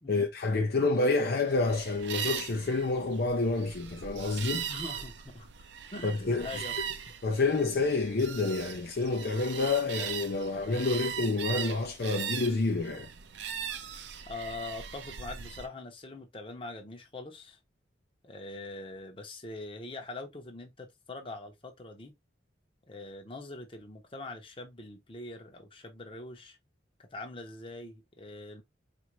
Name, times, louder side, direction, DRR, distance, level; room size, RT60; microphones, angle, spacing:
voice 1, 0.1-4.7 6.0-6.5 7.2-13.1, left 3 dB, 55° left, 0.5 m, -28 dB
sound 1, 1.5-15.7, right 8 dB, 70° right, 0.5 m, -40 dB
voice 2, 4.7-5.5 5.9-6.7 14.3-17.6 18.2-22.1 22.9-26.6 27.0-28.6, left 2 dB, 30° left, 0.8 m, -43 dB
4.2 x 2.6 x 3.0 m
head